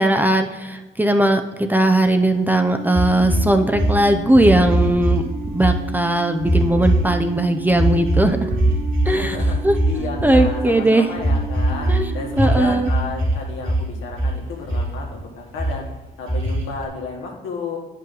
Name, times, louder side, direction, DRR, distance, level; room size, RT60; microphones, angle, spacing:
voice 1, 0.0-8.5 9.1-9.4 9.6-11.1 11.9-12.9, right 1 dB, 10° right, 6 dB, 0.6 m, -18 dB
sound 1, 2.6-12.9, right 4 dB, 50° right, 0.7 m, -34 dB
sound 2, 2.9-5.2 5.4-5.8 6.4-7.3 7.7-10.6 11.2-12.0 12.3-13.4 13.6-14.3 14.6-15.2 15.6-15.7 16.3-16.9, right 1 dB, 85° right, 2.7 m, -20 dB
voice 2, 9.0-9.6 9.9-15.9 16.2-17.8, left 4 dB, 85° left, -1 dB, 1.9 m, -32 dB
9.6 x 5.5 x 4.0 m, 1.2 s
cardioid pair, 90°, 20 cm